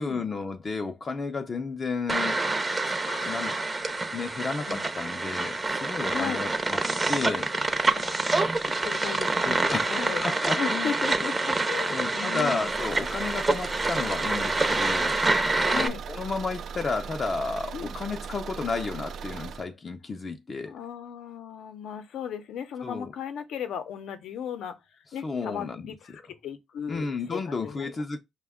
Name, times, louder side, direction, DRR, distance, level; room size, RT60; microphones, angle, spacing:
voice 1, 0.0-2.4 2.8-2.9 3.3-3.6 4.1-6.8 7.1-7.5 9.4-10.9 11.9-15.2 15.7-20.7 22.8-23.1 25.2-26.2 26.9-28.2, left 4 dB, 35° left, 0.5 m, -32 dB
sound 1, 2.1-15.9, right 2 dB, 20° right, 0.6 m, -27 dB
voice 2, 3.0-3.6 4.7-4.9 6.1-6.4 7.9-8.2 8.8-10.2 10.6-12.7 15.6-16.0 17.7-17.9 20.6-24.8 25.1-28.0, left 8 dB, 75° left, 0.6 m, -36 dB
Car / Engine, 12.6-19.7, right 6 dB, 65° right, 0.3 m, -39 dB
5.0 x 2.2 x 3.5 m
cardioid pair, 90°, 0 cm